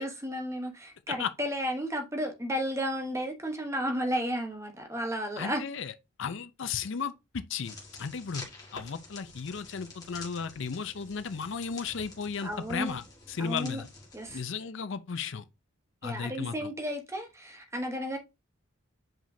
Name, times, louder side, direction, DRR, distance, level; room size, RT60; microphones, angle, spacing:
voice 1, 0.0-5.6 12.4-12.9 13.4-13.8 14.1-14.4 16.0-18.2, equal, 15° right, 1.0 m, -33 dB
voice 2, 5.4-5.9 6.2-8.4 8.7-13.0 13.3-13.9 14.3-15.4 16.0-16.7, left 6 dB, 60° left, 0.5 m, -35 dB
sound 1, 7.6-14.4, left 3 dB, 20° left, 1.7 m, -48 dB
7.4 x 5.0 x 2.7 m
head